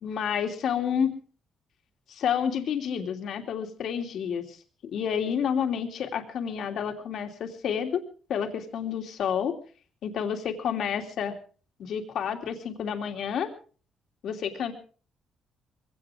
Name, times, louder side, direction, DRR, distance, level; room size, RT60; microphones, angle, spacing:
voice 1, 0.0-1.1 2.1-4.6 4.9-8.0 8.3-9.5 10.0-11.3 11.8-13.5 14.2-14.7, left 8 dB, 70° left, 4 dB, 2.9 m, -29 dB
22.0 x 17.5 x 3.7 m, 0.40 s
cardioid pair, 90°, 0 cm